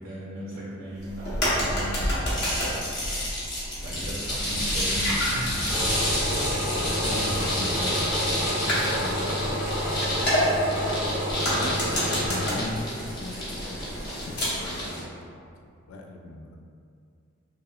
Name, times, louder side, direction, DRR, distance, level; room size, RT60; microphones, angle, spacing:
voice 1, 0.0-3.5 3.8-5.8 6.1-6.8, right 1 dB, 70° right, -8 dB, 0.6 m, -38 dB
sound 1, 1.0-14.8, equal, 55° left, 0.7 m, -31 dB
voice 2, 1.4-1.7 4.3-4.7 6.8-9.6 10.1-11.5 12.2-16.6, left 1 dB, 85° left, 1 dB, 0.3 m, -40 dB
sound 2, 2.3-15.0, left 1 dB, 20° left, 0.7 m, -30 dB
Engine, 5.7-12.5, equal, 10° right, 0.4 m, -29 dB
2.8 x 2.0 x 2.3 m, 2.3 s
head